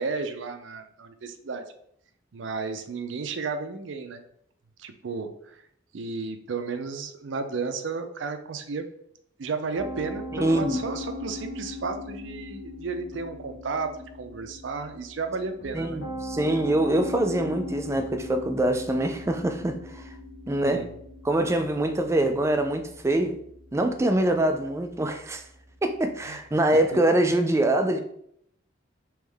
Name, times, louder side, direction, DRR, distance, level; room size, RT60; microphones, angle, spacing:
voice 1, 0.0-1.6 2.3-4.2 4.8-5.3 5.9-8.9 9.4-16.0 20.6-20.9 26.2-26.4, right 4 dB, 70° right, 8 dB, 0.5 m, -33 dB
Piano, 9.7-26.9, left 2 dB, 80° left, 0.9 m, -40 dB
voice 2, 10.3-10.8 15.7-20.0 20.5-20.8 21.2-23.4 23.7-25.4 25.8-28.0, right 1 dB, 15° right, 6 dB, 0.3 m, -24 dB
3.5 x 3.1 x 3.3 m, 0.70 s
head